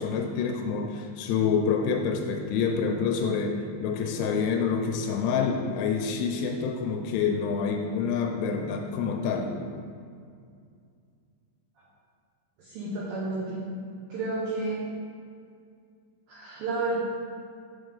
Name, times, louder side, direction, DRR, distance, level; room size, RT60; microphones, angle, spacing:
voice 1, 0.0-3.6 3.8-9.5, left 6 dB, 90° left, 3 dB, 3.1 m, -27 dB
voice 2, 12.6-13.6 14.1-14.8 16.3-17.0, right 2 dB, 75° right, -7 dB, 2.1 m, -31 dB
8.9 x 4.0 x 5.4 m, 2.3 s
omnidirectional pair, 5.5 m